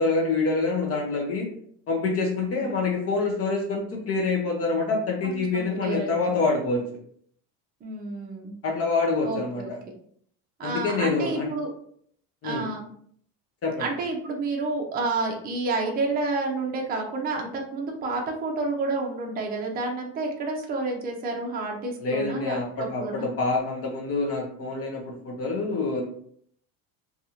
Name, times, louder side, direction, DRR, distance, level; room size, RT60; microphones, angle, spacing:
voice 1, 0.0-1.5 1.9-6.8 8.6-9.8 10.6-11.5 12.4-12.7 13.6-13.8 22.0-26.0, left 3 dB, 40° left, 0 dB, 0.6 m, -26 dB
voice 2, 5.2-6.4 7.8-8.6 9.2-9.7 10.6-11.7 12.4-12.8 13.8-23.3, right 3 dB, 25° right, 0 dB, 0.5 m, -30 dB
2.5 x 2.3 x 2.8 m, 0.63 s
cardioid pair, 130°, 37 cm